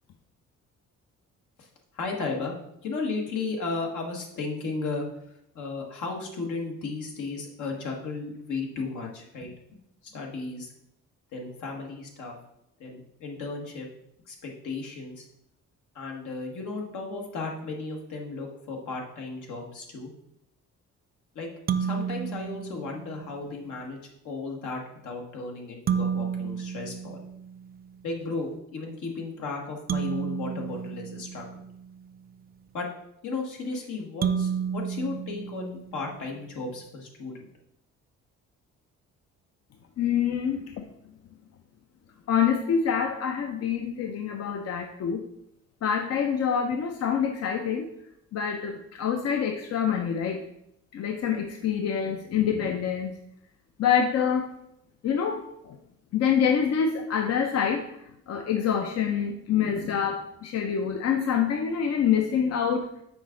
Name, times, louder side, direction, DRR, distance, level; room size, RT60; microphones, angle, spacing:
voice 1, 1.9-2.5 2.8-5.1 5.5-9.5 10.0-10.7 11.3-12.3 12.8-13.9 14.3-15.2 15.9-20.1 21.3-21.5 21.8-24.0 24.2-27.2 28.0-31.6 32.7-32.9 33.2-37.4, left 3 dB, 75° left, 1 dB, 1.4 m, -34 dB
sound 1, 21.7-23.4 25.9-27.9 29.9-32.0 34.2-36.3, right 7 dB, 30° right, 0.4 m, -31 dB
voice 2, 40.0-40.9 42.3-45.3 45.8-47.9 48.3-50.5 50.9-53.1 53.8-54.5 55.0-55.8 56.1-62.9, left 7 dB, 55° left, 5 dB, 0.6 m, -26 dB
6.2 x 4.8 x 3.7 m, 0.79 s
cardioid pair, 90°, 30 cm